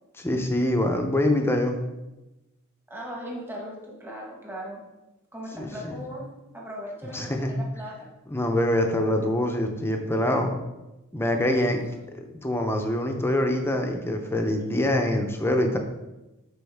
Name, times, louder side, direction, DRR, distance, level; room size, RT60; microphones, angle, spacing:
voice 1, 0.2-1.8 5.6-6.0 7.1-7.5 8.3-10.5 11.1-11.8 12.1-15.8, left 1 dB, 10° left, 4 dB, 0.7 m, -25 dB
voice 2, 2.9-4.8 5.3-8.1 11.3-11.8, equal, 10° right, -3 dB, 1.4 m, -39 dB
9.6 x 4.1 x 3.5 m, 1.0 s
head